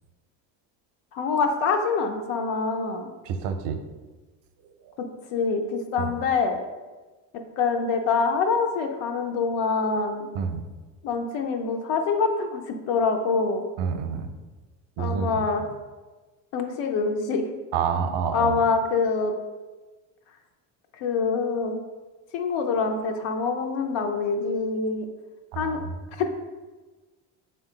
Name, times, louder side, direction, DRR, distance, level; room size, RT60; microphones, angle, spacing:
voice 1, 1.1-3.1 5.0-6.6 7.6-10.2 11.0-13.6 15.0-15.6 16.5-17.5 18.3-19.3 20.9-21.8 22.3-25.1 25.6-25.8 26.2-26.3, left 4 dB, 75° left, 4 dB, 0.6 m, -25 dB
voice 2, 3.2-3.8 6.0-6.1 10.3-10.6 13.8-14.3 15.0-15.5 17.7-18.6 25.5-25.9, right 6 dB, 55° right, 8 dB, 0.5 m, -28 dB
3.6 x 2.3 x 3.8 m, 1.2 s
supercardioid pair, 90°, 49 cm